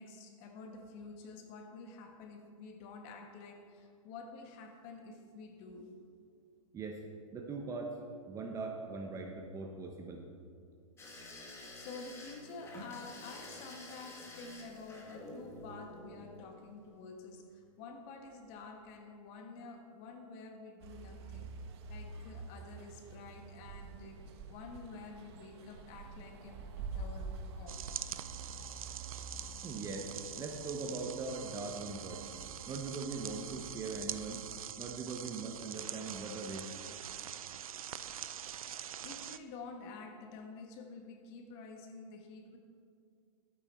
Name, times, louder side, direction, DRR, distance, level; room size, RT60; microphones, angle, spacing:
voice 1, 0.0-5.9 11.7-21.5 21.9-27.8 38.1-38.8 39.0-42.6, left 4 dB, 40° left, 4 dB, 1.5 m, -49 dB
voice 2, 7.3-8.0 8.3-10.2 29.6-32.3 32.7-34.4 34.8-36.7, right 3 dB, 20° right, 3 dB, 0.9 m, -41 dB
sound 1, 11.0-17.0 18.3-18.6 18.9-19.0, left 1 dB, 15° left, 1.7 m, -50 dB
sound 2, 20.8-34.6, right 4 dB, 50° right, 1.0 m, -48 dB
sound 3, 27.7-39.4, right 9 dB, 85° right, 0.5 m, -44 dB
12.0 x 9.0 x 4.3 m, 2.2 s
hypercardioid pair, 135°, 17 cm